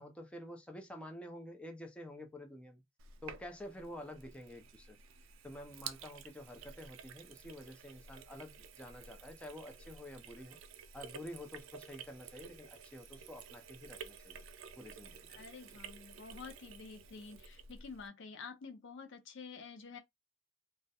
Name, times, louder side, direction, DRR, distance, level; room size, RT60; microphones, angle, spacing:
voice 1, 0.0-2.8 3.2-5.0 5.4-10.6 10.9-14.4 14.8-15.2 15.7-15.8, left 1 dB, 5° left, 0.4 m, -49 dB
Sink (filling or washing), 3.0-18.1, right 6 dB, 90° right, 0.3 m, -52 dB
voice 2, 15.3-20.0, left 5 dB, 65° left, 0.5 m, -49 dB
2.3 x 2.0 x 2.7 m
head